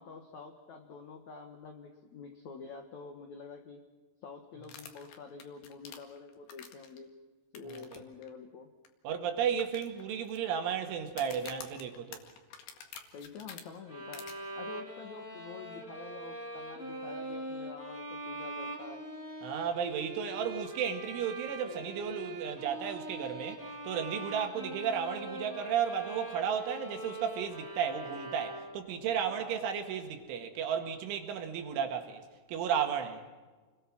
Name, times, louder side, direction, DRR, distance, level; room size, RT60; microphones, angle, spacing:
voice 1, 0.0-3.8 4.2-7.1 7.5-8.7 13.1-19.0 29.2-29.6, left 4 dB, 90° left, 1.6 m, -48 dB
sound 1, 4.6-7.0 7.5-8.0 8.2-8.3 8.8-8.9 9.6-10.4 11.1-13.6 14.1-14.3, left 7 dB, 60° left, 3.6 m, -47 dB
voice 2, 9.0-12.2 19.4-32.2 32.5-33.2, right 8 dB, 75° right, 4.3 m, -33 dB
sound 2, 13.9-29.0, right 1 dB, 5° right, 2.2 m, -42 dB
29.0 x 22.0 x 6.1 m
omnidirectional pair, 5.7 m